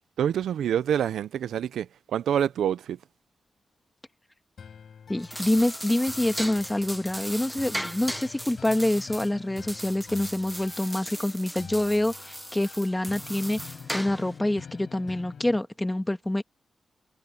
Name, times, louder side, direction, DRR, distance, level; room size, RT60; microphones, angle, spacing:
voice 1, 0.2-3.0, right 9 dB, 90° right, 0.5 m, -26 dB
sound 1, 4.6-15.6, left 6 dB, 70° left, 6.4 m, -46 dB
voice 2, 5.1-13.6 13.9-16.4, left 1 dB, 15° left, 1.7 m, -26 dB
sound 2, 5.1-14.4, equal, 5° right, 0.9 m, -37 dB
cardioid pair, 55°, 0 cm